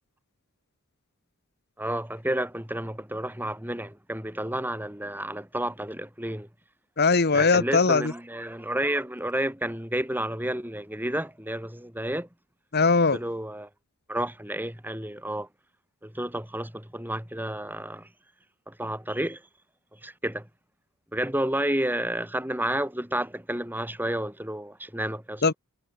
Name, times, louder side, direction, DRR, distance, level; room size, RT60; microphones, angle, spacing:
voice 1, 1.8-6.5 7.3-12.3 13.1-13.7 14.1-15.5 16.0-18.1 18.7-19.4 19.9-20.5 21.1-25.4, right 1 dB, 10° right, 6.9 m, -31 dB
voice 2, 7.0-8.1 12.7-13.2 25.4-25.5, left 4 dB, 50° left, 1.1 m, -20 dB
head